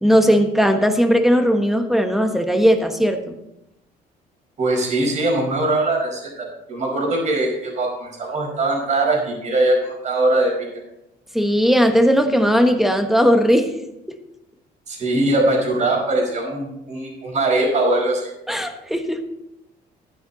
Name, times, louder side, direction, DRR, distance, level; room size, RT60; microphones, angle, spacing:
voice 1, 0.0-3.4 11.3-13.7 14.1-14.2 18.5-19.2, equal, ahead, 6 dB, 1.2 m, -17 dB
voice 2, 4.6-10.7 14.9-18.3, right 2 dB, 45° right, 0 dB, 4.9 m, -21 dB
12.5 x 9.5 x 4.1 m, 0.86 s
cardioid pair, 110°, 17 cm